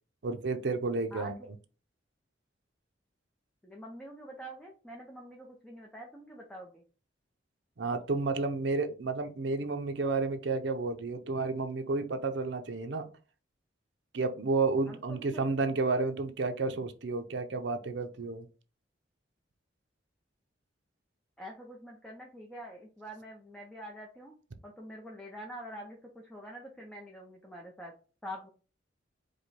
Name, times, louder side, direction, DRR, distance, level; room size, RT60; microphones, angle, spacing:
voice 1, 0.2-1.5 7.8-13.1 14.1-18.5, right 3 dB, 65° right, 7 dB, 0.6 m, -31 dB
voice 2, 1.1-1.5 3.6-6.8 14.9-15.4 21.4-24.3 24.6-27.9 28.2-28.5, equal, 5° left, -1 dB, 0.6 m, -46 dB
4.9 x 2.2 x 4.1 m, 0.36 s
head